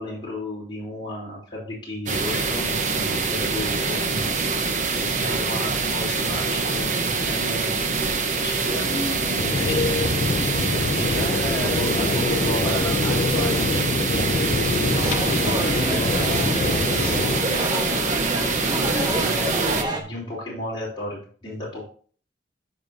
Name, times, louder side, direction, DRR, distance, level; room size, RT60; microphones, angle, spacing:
voice 1, 0.0-4.3 4.9-7.8 8.4-10.2 10.9-11.3 11.8-13.0 14.3-16.2 16.8-18.1 18.6-21.8, left 1 dB, 25° left, -7 dB, 3.4 m, -33 dB
sound 1, 2.1-19.8, right 4 dB, 45° right, 1.0 m, -25 dB
sound 2, 9.4-17.4, left 3 dB, 45° left, 0.4 m, -25 dB
voice 2, 11.2-11.9 12.1-13.9 15.3-16.1, left 1 dB, 10° left, -3 dB, 1.5 m, -34 dB
sound 3, 14.9-20.0, right 1 dB, 25° right, 1.1 m, -28 dB
12.5 x 5.2 x 2.7 m, 0.44 s
head